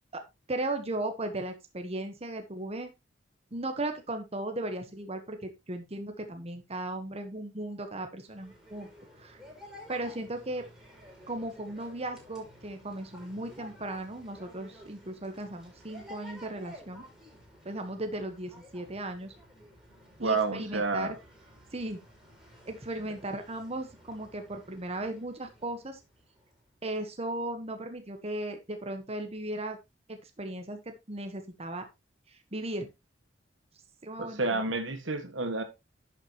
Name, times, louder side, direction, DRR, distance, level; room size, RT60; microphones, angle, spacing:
voice 1, 0.5-2.9 3.5-8.9 9.2-9.4 9.9-10.6 11.3-17.0 17.6-19.3 20.2-21.2 21.7-22.0 22.7-26.0 26.8-29.8 30.1-31.8 32.3-32.9 34.0-34.6, right 1 dB, 35° right, 1.3 m, -36 dB
sound 1, 8.2-26.7, equal, 5° right, 5.4 m, -53 dB
voice 2, 20.2-21.1 34.2-35.6, right 3 dB, 85° right, 1.9 m, -30 dB
10.5 x 7.5 x 3.0 m
head